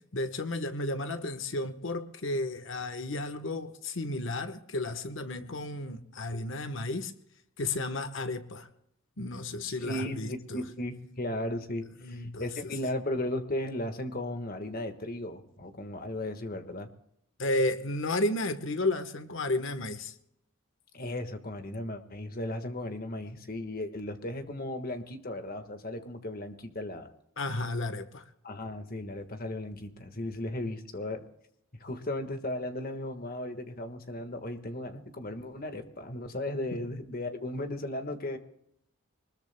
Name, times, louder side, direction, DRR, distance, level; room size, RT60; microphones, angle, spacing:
voice 1, 0.1-7.1 7.6-8.7 9.2-10.6 12.0-12.4 17.4-20.1 27.4-28.2 36.7-36.8, left 2 dB, 60° left, 9 dB, 1.2 m, -32 dB
voice 2, 9.7-16.9 20.9-27.1 28.4-31.2 31.8-38.4, left 1 dB, 45° left, 7 dB, 1.5 m, -36 dB
24.5 x 20.5 x 2.2 m, 0.76 s
head